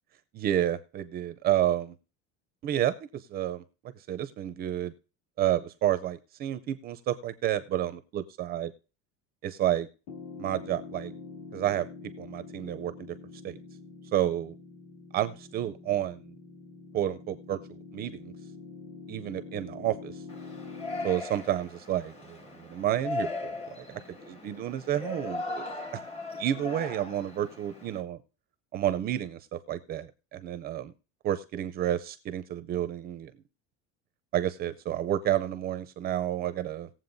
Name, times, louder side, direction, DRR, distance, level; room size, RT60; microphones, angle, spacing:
voice 1, 0.3-1.9 2.6-3.6 4.1-4.9 5.4-8.7 9.4-9.9 10.4-11.1 11.5-11.9 12.2-13.2 13.4-13.6 14.1-14.5 15.1-16.3 16.9-17.6 17.9-18.3 19.1-20.2 21.0-25.7 25.9-26.0 26.4-28.2 28.7-30.9 31.2-33.3 34.3-36.9, right 12 dB, 35° right, 11 dB, 0.4 m, -30 dB
Piano, 10.1-21.1, left 4 dB, 60° left, 2.1 m, -45 dB
Yell, 20.3-28.0, left 2 dB, 20° left, 1.0 m, -38 dB
19.0 x 7.5 x 2.6 m, 0.34 s
cardioid pair, 175°, 30 cm